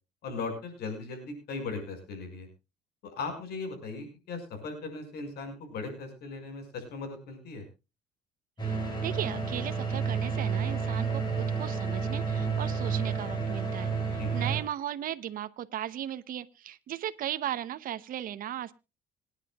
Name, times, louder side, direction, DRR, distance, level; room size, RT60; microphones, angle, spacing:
voice 1, 0.2-2.5 3.0-7.6 14.2-14.5, left 4 dB, 70° left, 6 dB, 6.0 m, -38 dB
sound 1, 8.6-14.6, right 5 dB, 25° left, 7.6 m, -30 dB
voice 2, 8.6-18.7, right 11 dB, 55° right, 12 dB, 0.9 m, -37 dB
26.0 x 10.0 x 2.4 m, 0.29 s
cardioid pair, 110°, 17 cm